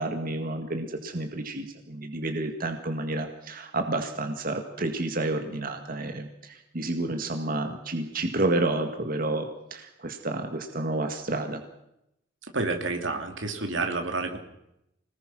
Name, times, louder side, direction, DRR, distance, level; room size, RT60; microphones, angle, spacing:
voice 1, 0.0-11.6, right 2 dB, 50° right, 5 dB, 1.9 m, -30 dB
voice 2, 12.5-14.4, right 3 dB, 85° right, 5 dB, 3.0 m, -29 dB
25.5 x 19.5 x 6.2 m, 0.83 s
head